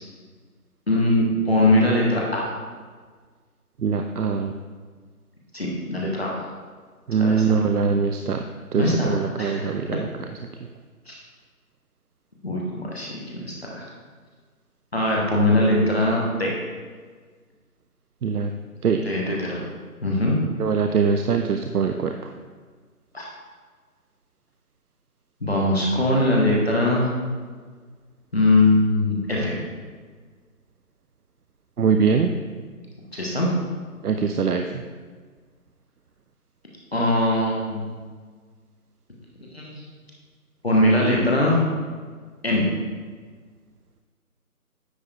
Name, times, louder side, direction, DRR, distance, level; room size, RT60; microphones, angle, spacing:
voice 1, 0.9-2.4 5.5-6.3 7.2-7.4 8.7-9.7 11.1-11.2 12.4-13.8 14.9-16.5 19.0-19.6 20.0-20.3 23.1-23.3 25.4-27.1 28.3-29.5 33.1-33.5 36.9-37.9 39.5-39.8 40.6-41.6 42.4-42.7, left 1 dB, 40° left, -3 dB, 1.2 m, -21 dB
voice 2, 3.8-4.5 7.1-8.4 8.7-10.3 10.6-10.7 18.2-18.5 18.8-19.0 20.6-22.3 31.8-32.3 34.0-34.8, right 5 dB, 75° right, 6 dB, 0.6 m, -22 dB
9.3 x 4.4 x 3.3 m, 1.5 s
figure-of-eight pair, 180°, 46 cm